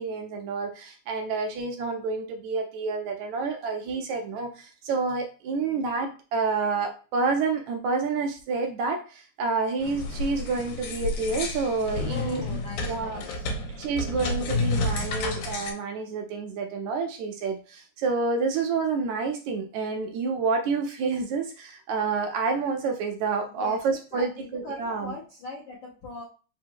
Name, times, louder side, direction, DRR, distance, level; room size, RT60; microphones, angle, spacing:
voice 1, 0.0-12.6 12.9-13.2 13.8-25.1, right 4 dB, 75° right, 3 dB, 1.8 m, -29 dB
sound 1, 9.8-15.7, left 2 dB, 85° left, 2.2 m, -30 dB
voice 2, 12.1-13.5 23.5-26.2, left 3 dB, 65° left, -6 dB, 1.1 m, -40 dB
4.9 x 2.0 x 4.6 m, 0.35 s
omnidirectional pair, 3.6 m